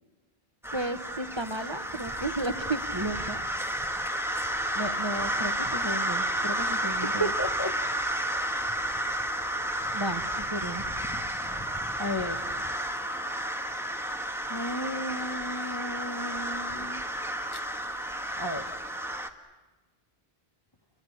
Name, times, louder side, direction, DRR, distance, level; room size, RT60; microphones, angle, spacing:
sound 1, 0.6-19.3, right 1 dB, ahead, 1.5 m, -31 dB
voice 1, 0.7-3.4 4.7-7.3 9.9-10.8, right 1 dB, 25° right, 8 dB, 1.2 m, -34 dB
voice 2, 7.0-7.8 8.8-9.0 12.0-12.5 14.5-17.0 17.5-17.6 18.4-18.7, equal, 25° left, 5 dB, 1.2 m, -34 dB
30.0 x 23.0 x 8.7 m, 1.2 s
omnidirectional pair, 1.0 m